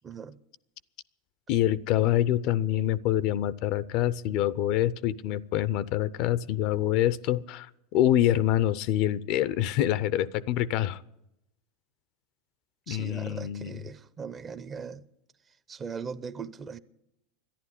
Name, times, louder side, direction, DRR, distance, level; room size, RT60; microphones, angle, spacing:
voice 1, 0.0-0.4 12.9-15.0 15.7-16.8, right 6 dB, 30° right, 0.7 m, -39 dB
voice 2, 1.5-7.7 7.9-11.0 12.9-13.8, left 12 dB, 60° left, 0.5 m, -26 dB
12.0 x 10.5 x 9.8 m
hypercardioid pair, 105°, 0 cm